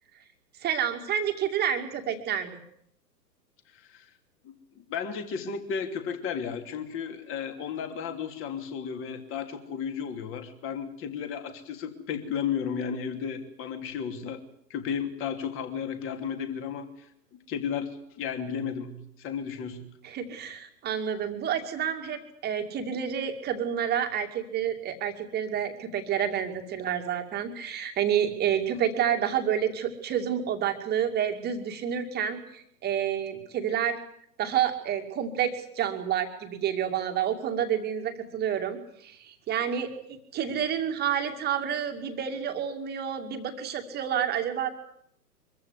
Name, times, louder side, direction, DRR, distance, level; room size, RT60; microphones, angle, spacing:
voice 1, 0.6-2.6 20.0-34.0 34.4-44.7, right 9 dB, 20° right, 5 dB, 2.3 m, -29 dB
voice 2, 4.4-14.4 14.7-17.1 17.3-17.9 18.2-19.8, left 7 dB, 25° left, 7 dB, 2.9 m, -33 dB
24.0 x 15.0 x 9.7 m, 0.70 s
figure-of-eight pair, 115°, 50 cm